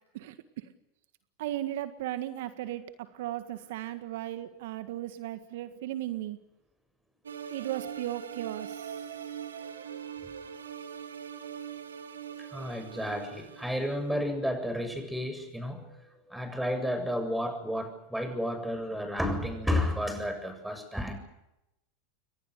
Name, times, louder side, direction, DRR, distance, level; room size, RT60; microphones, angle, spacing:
voice 1, 0.1-0.7 1.4-6.4 7.5-9.2, right 13 dB, 65° right, 10 dB, 1.8 m, -36 dB
sound 1, 7.2-14.2, right 8 dB, 85° right, 3.0 m, -42 dB
voice 2, 12.4-21.2, equal, 5° right, 7 dB, 7.6 m, -32 dB
29.5 x 23.5 x 6.7 m, 0.89 s
hypercardioid pair, 90°, 0 cm